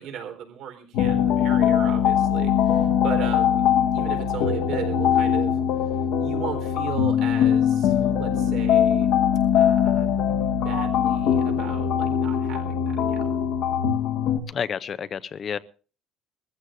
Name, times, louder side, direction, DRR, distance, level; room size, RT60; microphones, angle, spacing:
voice 1, 0.0-5.6 6.2-9.1 9.5-10.2 10.5-13.3, right 8 dB, 65° right, 4.1 m, -36 dB
sound 1, 0.9-14.4, left 8 dB, 75° left, 1.3 m, -22 dB
voice 2, 14.5-15.6, left 7 dB, 35° left, 0.6 m, -30 dB
23.5 x 15.0 x 2.6 m
cardioid pair, 145°, 0 cm